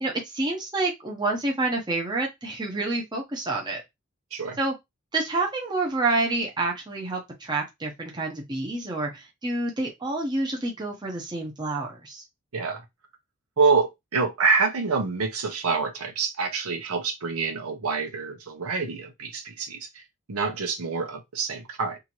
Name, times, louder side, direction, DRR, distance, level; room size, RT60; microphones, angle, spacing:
voice 1, 0.0-3.8 4.6-4.7 5.1-12.2, right 2 dB, 20° right, 0.8 m, -28 dB
voice 2, 13.6-20.0 20.3-22.0, right 4 dB, 85° right, 0.8 m, -26 dB
2.8 x 2.6 x 2.9 m
head